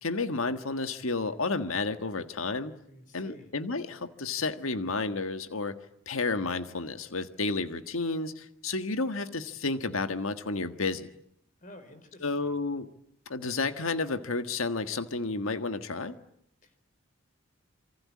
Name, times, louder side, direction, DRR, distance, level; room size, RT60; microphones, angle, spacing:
voice 1, 0.0-2.7 3.1-5.8 6.1-11.1 12.2-12.9 13.3-16.2, left 3 dB, 80° left, 9 dB, 1.6 m, -31 dB
voice 2, 2.9-3.5 11.6-12.5 16.6-16.9, left 1 dB, 40° left, 9 dB, 4.4 m, -51 dB
28.0 x 24.0 x 8.6 m, 0.68 s
head